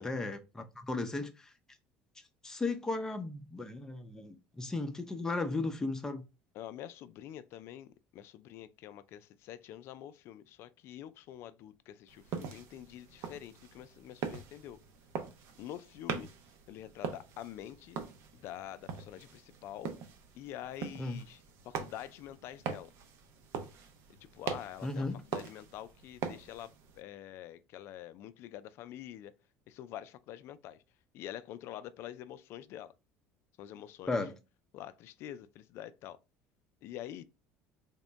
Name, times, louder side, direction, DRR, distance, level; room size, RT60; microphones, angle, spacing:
voice 1, 0.0-1.5 2.4-6.2 21.0-21.2 24.8-25.2 34.1-34.3, left 3 dB, 10° left, 0.6 m, -35 dB
voice 2, 6.5-14.8 15.6-16.3 16.7-18.0 18.3-19.9 20.3-22.9 24.1-29.3 29.7-30.8 31.1-32.9 33.6-34.2 34.7-36.2 36.8-37.2, left 12 dB, 60° left, 0.3 m, -46 dB
sound 1, 12.1-27.0, right 6 dB, 65° right, 0.7 m, -43 dB
3.5 x 2.1 x 3.9 m
cardioid pair, 115°, 5 cm